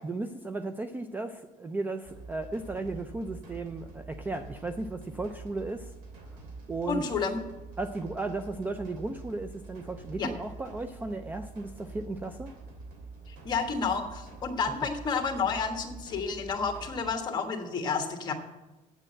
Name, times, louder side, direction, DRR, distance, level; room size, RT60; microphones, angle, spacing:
voice 1, 0.0-5.9 6.7-7.0 7.8-12.5, right 2 dB, 10° right, 8 dB, 0.4 m, -35 dB
sound 1, 2.0-17.1, right 3 dB, 90° right, 2.8 m, -46 dB
voice 2, 6.9-7.4 10.2-10.3 13.3-18.3, left 5 dB, 30° left, 4 dB, 1.4 m, -30 dB
8.8 x 7.6 x 7.6 m, 1.1 s
cardioid pair, 165°, 14 cm